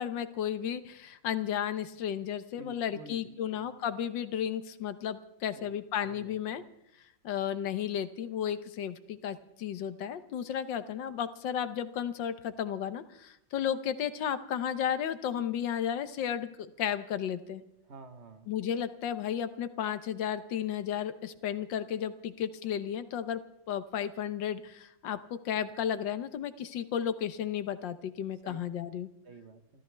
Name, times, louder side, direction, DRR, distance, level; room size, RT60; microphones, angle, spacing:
voice 1, 0.0-6.6 7.2-17.6 18.5-23.4 23.7-29.1, left 9 dB, 75° left, 12 dB, 1.6 m, -33 dB
voice 2, 2.6-3.7 5.5-5.8 6.0-6.4 17.8-18.5 28.4-28.6 29.2-29.8, right 3 dB, 40° right, 9 dB, 1.2 m, -50 dB
28.5 x 14.0 x 3.4 m, 0.82 s
omnidirectional pair, 2.0 m